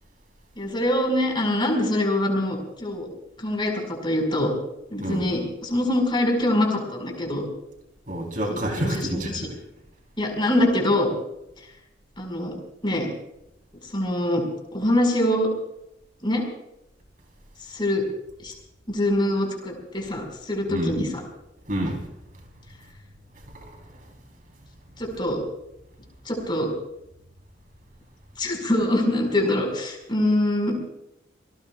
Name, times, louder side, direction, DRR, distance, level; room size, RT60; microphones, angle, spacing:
voice 1, 0.6-3.1 3.4-4.5 4.9-7.4 8.5-9.5 10.2-11.1 12.2-12.5 12.8-13.1 13.8-14.4 14.7-15.5 16.2-16.4 17.7-18.0 18.4-18.5 18.9-21.1 25.0-25.4 26.2-26.7 28.4-30.8, left 1 dB, 25° left, 1 dB, 5.0 m, -24 dB
voice 2, 5.0-5.3 8.1-9.6 20.7-21.0 21.7-22.1 23.5-24.1, right 1 dB, 45° right, 2 dB, 3.7 m, -29 dB
28.0 x 19.0 x 2.4 m, 0.83 s
head